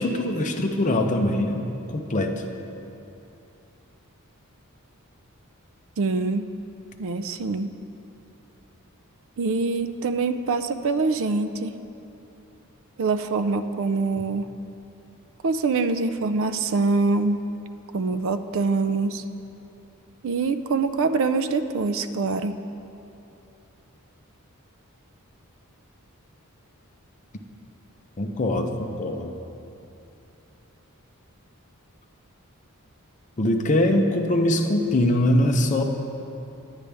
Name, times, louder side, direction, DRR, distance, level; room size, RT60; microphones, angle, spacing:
voice 1, 0.0-1.7 1.9-2.3 28.2-29.3 33.4-35.8, left 1 dB, 35° left, 3 dB, 0.6 m, -22 dB
voice 2, 6.0-6.5 7.0-7.7 9.4-11.7 13.0-14.5 15.4-17.5 17.9-19.2 20.2-22.6, right 3 dB, 60° right, 10 dB, 0.4 m, -24 dB
10.0 x 9.7 x 3.4 m, 2.8 s
head